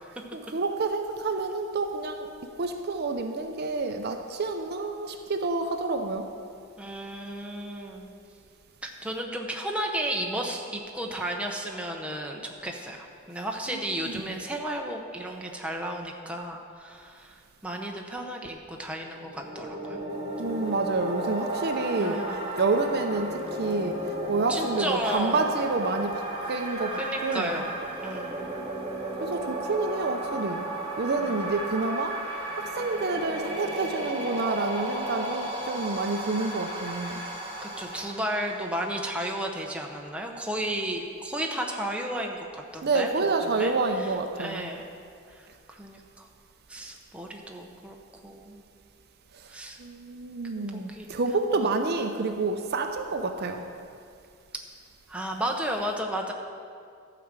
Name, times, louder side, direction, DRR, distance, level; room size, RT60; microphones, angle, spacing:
voice 1, 0.3-2.3 2.6-6.3 13.7-14.4 20.4-24.0 24.3-26.2 26.5-27.7 29.2-30.6 31.0-32.2 32.6-37.2 42.8-44.7 49.4-49.5 49.8-53.6, right 3 dB, 45° right, 5 dB, 0.6 m, -28 dB
voice 2, 6.8-8.1 8.8-20.0 22.0-22.5 24.5-25.4 27.0-27.7 28.0-28.5 31.2-31.4 37.6-44.9 45.3-46.3 46.7-47.9 48.2-48.6 49.5-49.8 50.6-51.1 51.5-51.7 55.1-56.3, right 1 dB, 5° right, 1 dB, 0.7 m, -33 dB
sound 1, 19.1-39.0, right 1 dB, 25° right, 1.8 m, -34 dB
12.0 x 5.0 x 7.4 m, 2.3 s
head